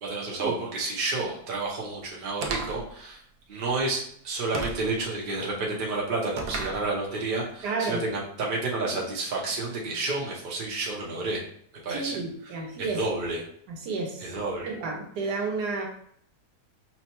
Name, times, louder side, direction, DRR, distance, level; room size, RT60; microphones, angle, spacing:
voice 1, 0.0-3.2 3.5-11.4 11.8-12.2 12.8-13.4 14.2-14.7, right 3 dB, 40° right, -3 dB, 0.8 m, -30 dB
sound 1, 2.4-2.9 4.6-4.9 6.4-6.8, right 4 dB, 70° right, 1.0 m, -32 dB
voice 2, 7.6-8.0 11.9-13.0 13.7-14.3 14.6-15.8, right 4 dB, 90° right, 1 dB, 1.4 m, -31 dB
5.7 x 2.1 x 2.9 m, 0.65 s
omnidirectional pair, 1.7 m